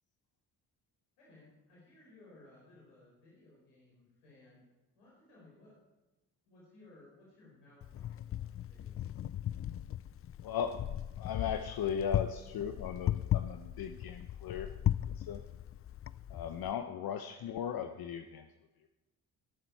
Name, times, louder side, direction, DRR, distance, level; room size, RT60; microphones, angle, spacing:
voice 1, 1.2-4.6 4.9-5.8 6.4-9.2, left 2 dB, 90° left, -6 dB, 4.6 m, -60 dB
Wind, 7.8-16.7, left 11 dB, 35° left, 0.4 m, -37 dB
voice 2, 10.4-10.9 11.2-15.4 16.3-18.5, left 8 dB, 55° left, 8 dB, 0.9 m, -37 dB
20.0 x 7.6 x 4.6 m, 1.1 s
supercardioid pair, 60°, 44 cm